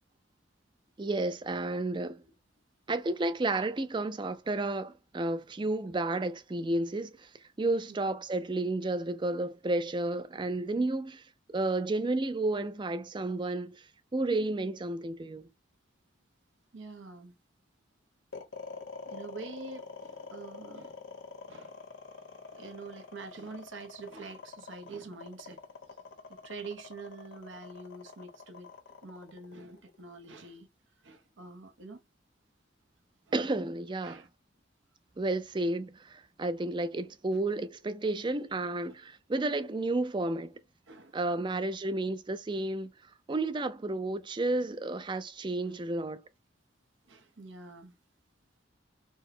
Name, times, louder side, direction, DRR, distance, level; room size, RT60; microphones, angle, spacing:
voice 1, 1.0-2.2 2.9-7.3 7.6-11.2 11.5-13.8 14.1-15.5 33.3-34.2 35.2-40.6 41.1-42.9 43.3-46.2, right 2 dB, 25° right, 0.4 m, -31 dB
voice 2, 16.7-17.4 19.1-21.0 21.5-21.8 22.5-25.6 26.4-28.7 29.0-30.7 31.0-32.0 34.0-34.3 38.8-38.9 40.9-41.7 45.6-45.7 47.1-48.0, right 3 dB, 75° right, 0.8 m, -46 dB
sound 1, 18.3-30.6, left 4 dB, 75° left, 1.2 m, -46 dB
4.5 x 2.1 x 2.6 m
head